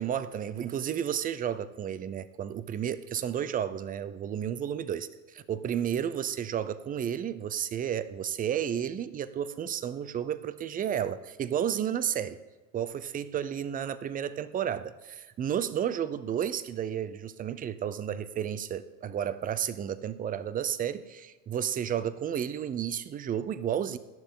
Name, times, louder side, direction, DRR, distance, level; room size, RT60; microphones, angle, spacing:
voice 1, 0.0-12.4 12.7-24.0, right 9 dB, 20° right, 15 dB, 0.5 m, -32 dB
17.5 x 12.0 x 3.8 m, 1.2 s
supercardioid pair, 140°, 38 cm